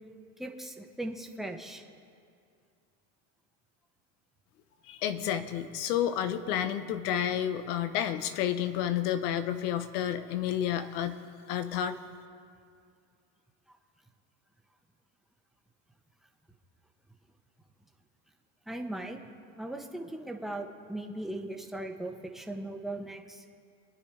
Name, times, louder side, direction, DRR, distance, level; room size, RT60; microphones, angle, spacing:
voice 1, 0.4-1.8 18.7-19.2 19.5-23.4, right 1 dB, ahead, 2 dB, 1.5 m, -38 dB
voice 2, 4.9-11.2 11.5-12.0, left 10 dB, 85° left, 10 dB, 1.2 m, -30 dB
27.5 x 10.0 x 3.4 m, 2.3 s
supercardioid pair, 100°, 44 cm